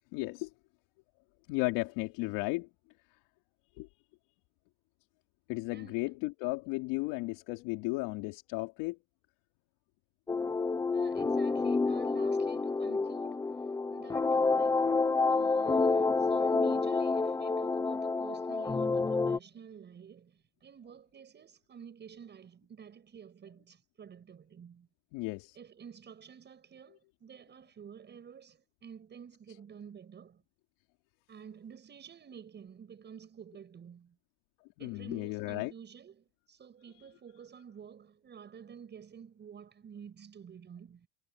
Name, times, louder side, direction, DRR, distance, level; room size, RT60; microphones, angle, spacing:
voice 1, 0.1-0.5 1.5-2.7 3.8-3.9 5.5-9.0 25.1-25.6 34.8-35.7, left 23 dB, 80° left, 3.1 m, -34 dB
sound 1, 10.3-19.4, left 3 dB, 10° left, 0.7 m, -29 dB
voice 2, 10.9-13.6 13.9-14.9 15.3-24.9 25.5-30.4 31.3-34.2 34.8-41.1, right 7 dB, 25° right, 7.3 m, -51 dB
cardioid pair, 180°, 43 cm